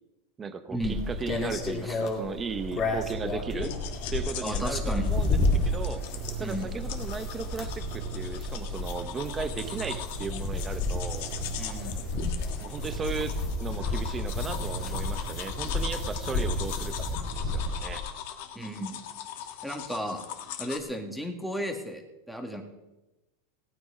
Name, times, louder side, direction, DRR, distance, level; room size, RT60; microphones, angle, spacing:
voice 1, 0.4-3.8 4.1-5.4 5.7-6.0 6.4-11.3 12.6-16.9 17.4-18.0, right 5 dB, 20° right, 10 dB, 0.9 m, -36 dB
sound 1, 0.8-18.0, left 3 dB, 35° left, 2.4 m, -32 dB
Purr, 2.6-18.0, right 4 dB, 55° right, 1.7 m, -40 dB
sound 2, 3.6-20.8, left 10 dB, 65° left, 1.5 m, -41 dB
voice 2, 4.4-5.1 6.4-6.7 11.6-12.1 18.6-19.0 19.6-20.2 20.6-22.6, equal, ahead, 3 dB, 2.0 m, -34 dB
17.5 x 9.4 x 5.0 m, 1.0 s
supercardioid pair, 130°, 0 cm